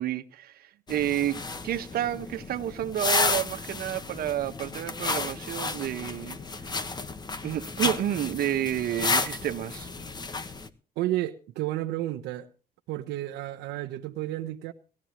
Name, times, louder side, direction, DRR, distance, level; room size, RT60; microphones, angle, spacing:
voice 1, 0.0-6.4 7.4-9.9, right 11 dB, 60° right, 1.5 m, -30 dB
sound 1, 0.9-10.7, left 3 dB, 25° left, 1.5 m, -32 dB
voice 2, 11.0-12.5 12.9-14.7, right 15 dB, 85° right, 1.2 m, -31 dB
19.5 x 13.5 x 3.1 m
cardioid pair, 110°, 17 cm